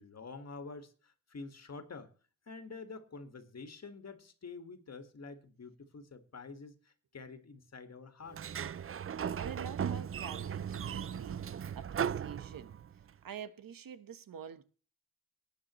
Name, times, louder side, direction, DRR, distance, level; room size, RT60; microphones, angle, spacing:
voice 1, 0.0-2.1 2.5-8.6, left 4 dB, 50° left, 2.0 m, -48 dB
Sliding door, 8.3-13.0, right 8 dB, 40° right, 0.5 m, -37 dB
voice 2, 9.4-12.8 13.2-14.6, right 7 dB, 90° right, 1.3 m, -47 dB
19.5 x 9.6 x 3.2 m
wide cardioid pair, 105°, 33 cm